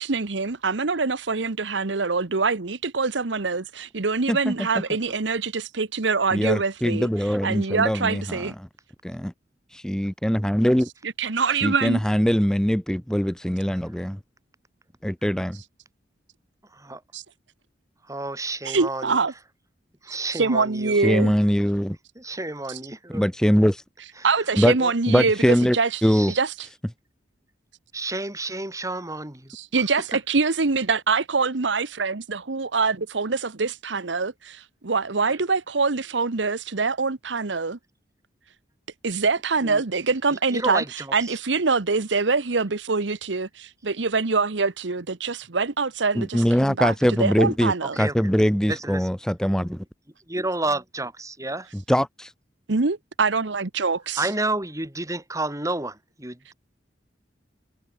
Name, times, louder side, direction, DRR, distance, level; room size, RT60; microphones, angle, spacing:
voice 1, 0.0-7.1 7.4-8.5 11.0-12.0 17.1-17.2 18.6-19.3 20.1-21.3 24.2-26.0 26.3-26.7 29.5-37.8 39.0-40.8 41.1-48.0 52.7-54.3, right 4 dB, 80° right, 1.1 m, -24 dB
voice 2, 6.3-8.4 9.0-9.3 9.7-10.9 11.6-14.2 15.0-15.6 21.0-22.0 23.1-23.8 24.6-24.7 25.1-25.8 26.0-26.3 46.2-49.8 51.9-52.3, equal, 5° left, 0.6 m, -22 dB
voice 3, 16.7-17.0 18.0-19.2 20.0-21.0 22.2-23.3 24.2-24.5 24.8-24.9 26.1-26.4 27.9-29.9 39.6-39.8 40.5-41.4 47.8-48.3 48.7-49.1 50.3-51.7 54.2-56.5, right 2 dB, 20° right, 5.4 m, -31 dB
head